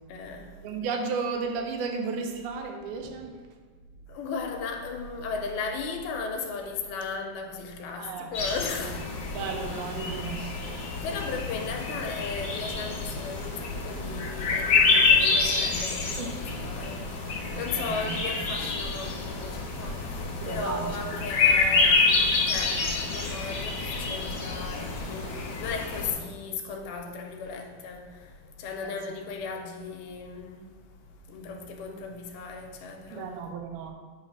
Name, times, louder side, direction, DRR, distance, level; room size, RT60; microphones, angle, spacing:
voice 1, 0.1-0.7 4.1-9.1 11.0-30.7 31.1-33.4, left 4 dB, 85° left, 2.6 m, -36 dB
voice 2, 0.6-3.4 8.0-8.3 8.9-9.0 9.3-10.6 16.2-16.3 17.5-18.5 20.4-21.1 26.0-26.2 28.8-28.9 33.1-33.9, right 5 dB, 85° right, 2.6 m, -34 dB
sound 1, 8.3-26.1, left 4 dB, 40° left, 2.3 m, -27 dB
8.5 x 3.3 x 5.5 m
omnidirectional pair, 4.4 m